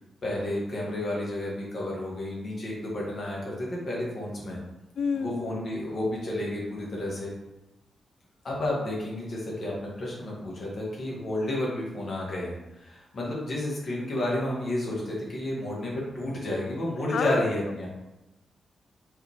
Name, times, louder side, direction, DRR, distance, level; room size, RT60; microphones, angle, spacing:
voice 1, 0.2-4.6 5.1-7.3 8.4-17.9, left 1 dB, 40° left, -4 dB, 1.9 m, -31 dB
voice 2, 5.0-5.5 17.1-17.5, left 6 dB, 65° left, 12 dB, 0.3 m, -29 dB
5.6 x 4.6 x 3.6 m, 0.96 s
wide cardioid pair, 175°, 0 cm